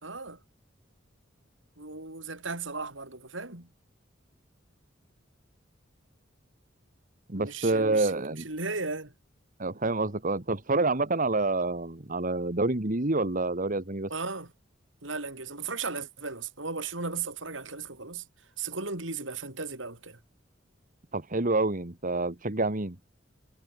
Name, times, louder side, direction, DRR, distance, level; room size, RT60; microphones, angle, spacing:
voice 1, 0.0-0.4 1.8-3.7 7.3-9.1 14.1-14.5 15.0-18.3 18.6-20.2, right 4 dB, 75° right, 5.5 m, -36 dB
voice 2, 7.3-8.5 9.6-14.1 21.1-23.0, right 2 dB, 45° right, 1.8 m, -27 dB
head